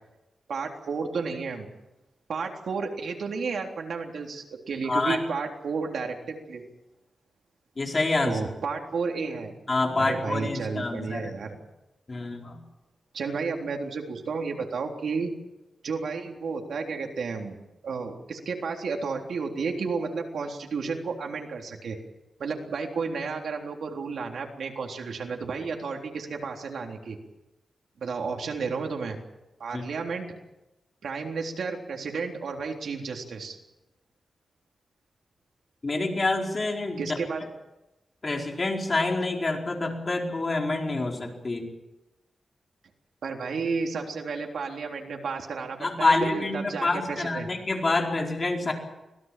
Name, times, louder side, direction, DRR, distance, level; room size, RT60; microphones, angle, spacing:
voice 1, 0.5-1.7 2.3-6.6 8.2-9.6 10.0-11.6 13.1-15.3 15.8-17.6 17.8-22.0 22.4-27.2 28.0-29.2 29.6-30.3 31.0-33.6 37.0-37.5 43.2-47.5, right 4 dB, 80° right, 2 dB, 3.6 m, -32 dB
voice 2, 7.8-8.4 9.7-11.3 12.1-12.6 29.7-29.9 35.8-37.1 38.2-41.6 45.8-48.7, left 2 dB, 35° left, 1 dB, 4.6 m, -27 dB
25.5 x 18.0 x 7.6 m, 0.99 s
wide cardioid pair, 120°, 0 cm